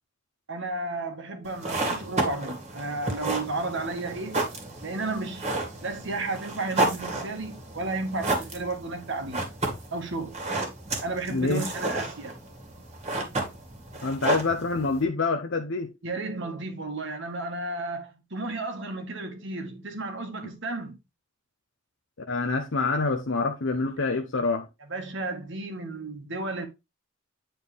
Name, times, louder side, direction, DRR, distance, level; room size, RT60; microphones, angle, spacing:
voice 1, 0.5-4.5 4.8-5.5 5.8-9.5 9.9-10.4 11.0-12.3 16.0-21.0 24.9-26.7, right 2 dB, 60° right, 1.6 m, -33 dB
sound 1, 1.4-15.0, right 2 dB, 30° right, 2.1 m, -32 dB
voice 2, 11.3-11.6 14.0-15.9 22.3-24.7, left 3 dB, 60° left, 0.8 m, -26 dB
9.0 x 4.3 x 3.5 m
head